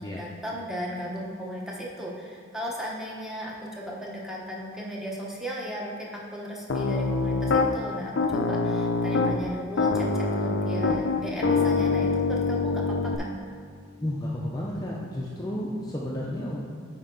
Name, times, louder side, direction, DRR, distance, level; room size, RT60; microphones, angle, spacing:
voice 1, 0.0-13.3, equal, ahead, -4 dB, 0.9 m, -36 dB
Piano, 6.7-7.7 8.2-9.4 9.8-13.2, left 3 dB, 75° left, 0.5 m, -24 dB
voice 2, 14.0-16.6, left 1 dB, 20° left, -4 dB, 0.6 m, -32 dB
9.8 x 4.5 x 3.8 m, 2.1 s
head